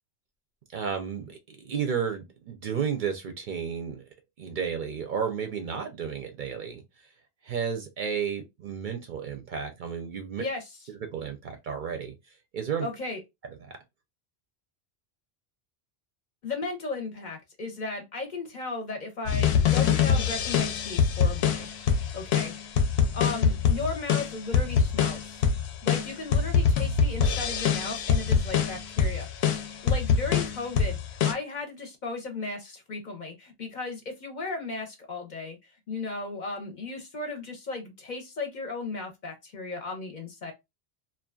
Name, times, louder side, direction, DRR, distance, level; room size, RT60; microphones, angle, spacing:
voice 1, 0.7-4.0 4.4-6.8 7.4-10.4 11.1-12.1 12.5-12.9 13.6-13.8, right 7 dB, 60° right, 0.6 m, -32 dB
voice 2, 12.8-13.2 16.4-21.7 22.1-22.5 23.1-25.4 25.8-29.3 29.8-40.5, left 3 dB, 50° left, 0.7 m, -35 dB
sound 1, 19.3-31.3, left 7 dB, 80° left, 0.8 m, -24 dB
2.5 x 2.2 x 2.3 m
omnidirectional pair, 1.1 m